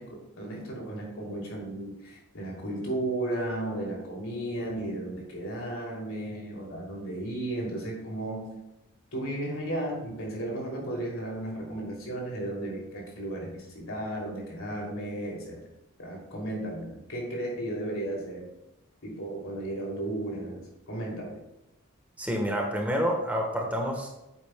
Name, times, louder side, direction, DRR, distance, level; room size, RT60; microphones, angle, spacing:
voice 1, 0.0-8.5 9.1-15.6 16.0-18.5 19.0-21.4, right 1 dB, 80° left, -2 dB, 2.9 m, -34 dB
voice 2, 22.2-24.1, equal, 5° right, 0 dB, 1.2 m, -28 dB
8.8 x 8.3 x 2.2 m, 0.95 s
head